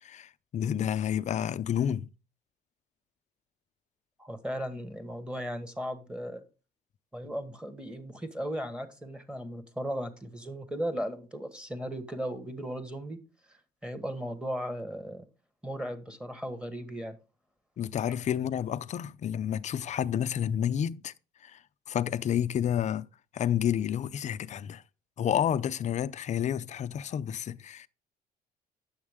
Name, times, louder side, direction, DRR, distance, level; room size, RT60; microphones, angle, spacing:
voice 1, 0.0-2.1 17.8-21.1 21.4-21.6 21.9-23.1 23.3-24.8 25.2-27.9, left 9 dB, 45° left, 0.5 m, -30 dB
voice 2, 4.2-6.4 7.1-13.2 13.5-15.2 15.6-17.2, equal, 5° right, 1.5 m, -36 dB
9.6 x 7.2 x 3.6 m
cardioid pair, 110°, 17 cm